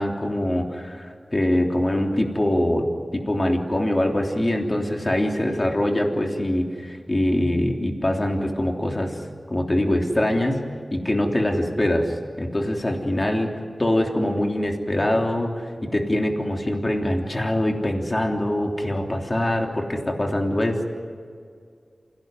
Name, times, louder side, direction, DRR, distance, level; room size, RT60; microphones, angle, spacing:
voice 1, 0.0-2.9 3.1-9.2 9.5-10.6 10.9-13.5 13.8-20.9, left 1 dB, 30° left, 2 dB, 3.3 m, -23 dB
28.5 x 17.5 x 9.5 m, 2.1 s
wide cardioid pair, 75°, 0 cm